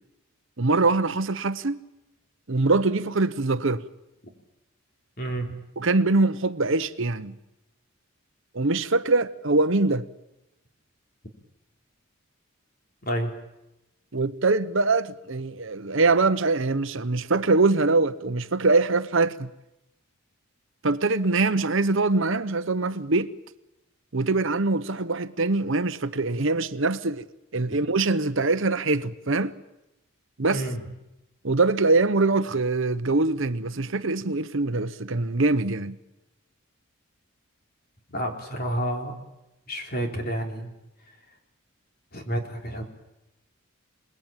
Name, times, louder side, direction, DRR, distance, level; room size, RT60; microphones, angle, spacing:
voice 1, 0.6-1.8 2.5-3.8 5.8-7.3 8.5-10.0 14.1-19.5 20.8-23.3 24.1-27.2 27.5-29.5 30.4-30.6 31.4-36.0, right 3 dB, 60° right, 0.9 m, -23 dB
voice 2, 5.2-5.5 13.0-13.3 30.5-30.8 38.1-39.1 39.7-40.7 42.1-42.8, right 1 dB, 45° left, 4.1 m, -29 dB
28.0 x 19.5 x 9.1 m
head